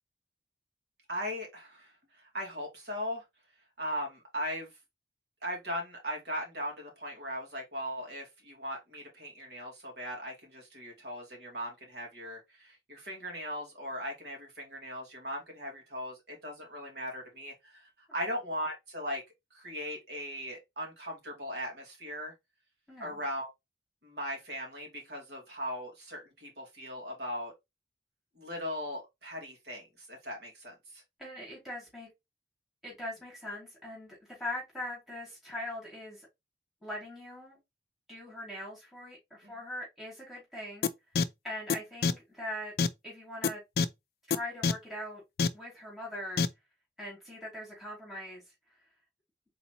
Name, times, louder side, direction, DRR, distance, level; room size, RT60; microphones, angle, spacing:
voice 1, 1.1-3.2 3.8-4.7 5.4-19.2 19.5-22.3 23.0-23.5 24.0-27.5 28.4-31.0 39.4-39.6, equal, 70° right, 2.4 m, -39 dB
voice 2, 22.9-23.2 31.2-32.1 32.8-36.3 36.8-37.6 38.1-40.9 41.4-42.7 43.0-43.6 44.3-45.2 45.5-46.4 47.0-48.4, left 1 dB, ahead, 2.5 m, -41 dB
sound 1, 40.8-40.9 41.2-41.3 41.7-41.8 42.0-42.1 42.8-42.9 43.4-43.5 43.8-43.9 44.3-44.4 44.6-44.7 45.4-45.5 46.4-46.5, left 5 dB, 60° left, 0.4 m, -25 dB
4.1 x 3.9 x 2.9 m
head